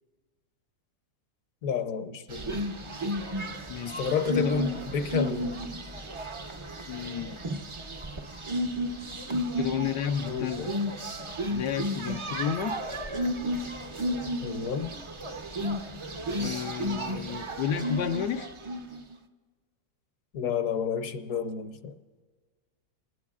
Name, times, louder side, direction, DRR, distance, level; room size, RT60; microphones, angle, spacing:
voice 1, 1.6-2.6 4.0-5.5 10.3-10.7 14.4-14.9 20.3-21.9, left 6 dB, 60° left, 1.1 m, -30 dB
sound 1, 2.3-19.0, equal, 45° right, 0.4 m, -33 dB
voice 2, 3.7-4.1 4.3-4.6 6.9-7.4 9.6-10.7 11.5-12.8 16.4-18.5, left 8 dB, 85° left, 1.2 m, -31 dB
28.5 x 20.0 x 2.4 m
omnidirectional pair, 1.7 m